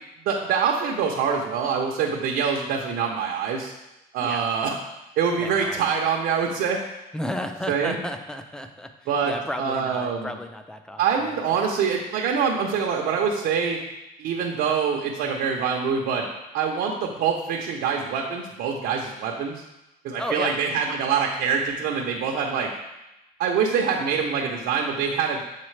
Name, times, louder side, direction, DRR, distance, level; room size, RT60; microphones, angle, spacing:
voice 1, 0.3-3.7 4.1-4.8 5.2-6.8 7.7-8.0 9.1-10.3 11.0-13.8 14.2-16.3 16.5-19.6 20.0-22.7 23.4-25.4, right 6 dB, 75° right, 0 dB, 0.7 m, -25 dB
voice 2, 5.4-6.1 7.1-11.6 20.2-20.6, left 1 dB, 5° left, 6 dB, 0.5 m, -34 dB
7.3 x 4.1 x 3.2 m, 0.96 s
cardioid pair, 110°, 17 cm